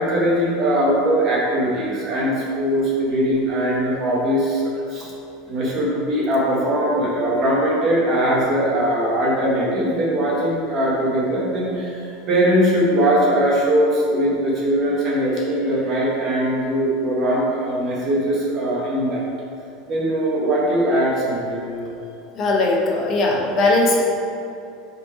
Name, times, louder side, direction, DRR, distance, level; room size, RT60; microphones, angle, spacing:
voice 1, 0.0-4.6 4.9-5.1 5.5-19.3 19.9-21.9, right 1 dB, 30° right, -5 dB, 1.4 m, -20 dB
voice 2, 22.3-24.0, left 2 dB, 25° left, -2 dB, 0.9 m, -19 dB
5.9 x 4.5 x 4.7 m, 2.7 s
supercardioid pair, 180°, 0 cm